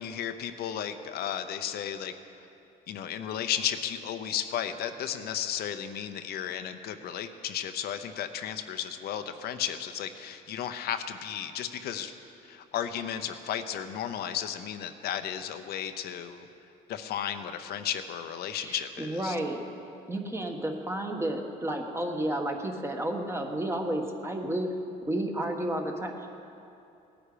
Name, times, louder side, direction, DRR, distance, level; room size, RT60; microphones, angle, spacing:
voice 1, 0.0-2.1 2.9-12.1 12.4-16.5 16.9-19.4, left 9 dB, 70° left, 8 dB, 0.8 m, -34 dB
voice 2, 18.5-19.6 20.1-24.7 25.1-26.3, right 1 dB, 15° right, 3 dB, 1.4 m, -31 dB
18.0 x 10.0 x 5.1 m, 2.7 s
cardioid pair, 110°, 17 cm